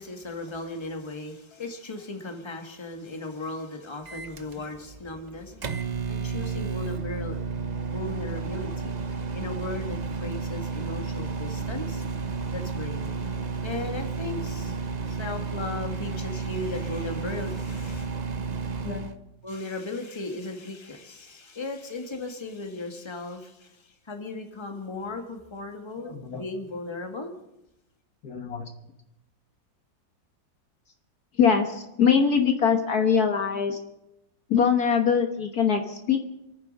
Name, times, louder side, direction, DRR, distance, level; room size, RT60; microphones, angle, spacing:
voice 1, 0.0-5.7 6.1-7.4 7.9-12.0 12.5-13.1 13.6-18.1 19.4-27.3, left 2 dB, 15° left, 4 dB, 1.7 m, -37 dB
Microwave oven, 4.1-19.1, right 5 dB, 45° right, 0.5 m, -32 dB
voice 2, 26.1-26.4 28.2-28.7 31.4-33.8 34.5-36.2, left 6 dB, 55° left, 5 dB, 1.6 m, -23 dB
27.5 x 9.4 x 5.4 m, 0.89 s
omnidirectional pair, 2.0 m